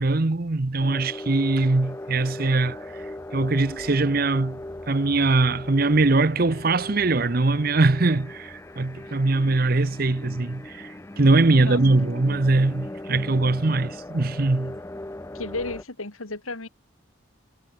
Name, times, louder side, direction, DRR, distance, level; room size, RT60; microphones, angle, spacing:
voice 1, 0.0-3.0 3.3-4.6 4.9-14.8, right 2 dB, 45° right, 0.8 m, -22 dB
sound 1, 0.8-15.8, left 1 dB, 15° left, 0.4 m, -38 dB
voice 2, 15.3-16.7, left 2 dB, 85° left, 3.2 m, -33 dB
head